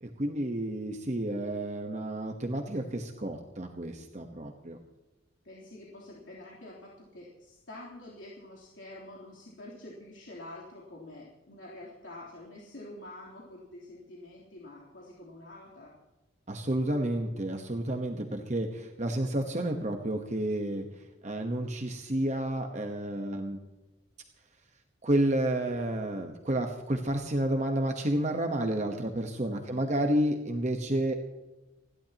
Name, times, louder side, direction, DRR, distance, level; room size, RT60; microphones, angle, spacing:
voice 1, 0.0-4.8 16.5-23.6 25.0-31.1, right 1 dB, 35° right, 4 dB, 1.1 m, -30 dB
voice 2, 5.4-15.9 29.6-30.1, left 1 dB, 70° left, -6 dB, 3.5 m, -47 dB
29.5 x 12.0 x 2.9 m, 1.1 s
head